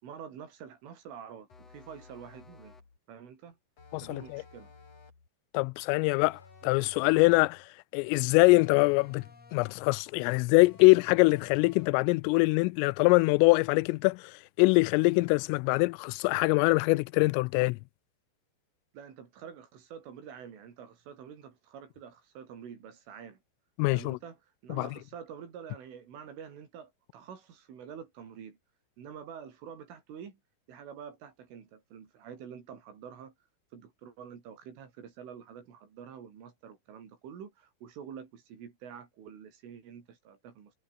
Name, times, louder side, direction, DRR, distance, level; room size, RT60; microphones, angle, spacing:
voice 1, 0.0-2.8 3.1-3.6 4.0-4.7 6.6-6.7 18.9-23.4 23.9-24.4 24.6-28.6 29.0-30.4 30.7-33.3 33.7-40.7, right 7 dB, 75° right, 6.6 m, -47 dB
sound 1, 1.5-3.0 3.8-5.3 6.2-7.7 8.5-9.9 10.6-12.1, left 4 dB, 30° left, 5.2 m, -54 dB
voice 2, 3.9-4.4 5.5-9.2 9.5-17.8 23.8-24.2 24.7-24.9, left 25 dB, 90° left, 3.2 m, -24 dB
omnidirectional pair, 5.7 m